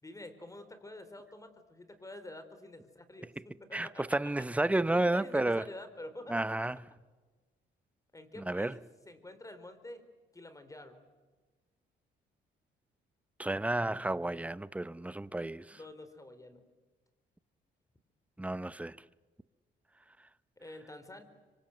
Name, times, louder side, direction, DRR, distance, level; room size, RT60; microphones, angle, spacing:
voice 1, 0.0-4.2 4.9-6.5 8.1-8.8 9.1-10.1 10.3-11.0 15.7-16.6 20.6-21.2, left 1 dB, 15° left, 3.9 m, -48 dB
voice 2, 3.7-5.6 6.3-6.8 8.4-8.7 13.4-15.8 18.4-19.0, right 2 dB, 5° right, 0.7 m, -31 dB
26.0 x 24.5 x 8.0 m
cardioid pair, 90°, 20 cm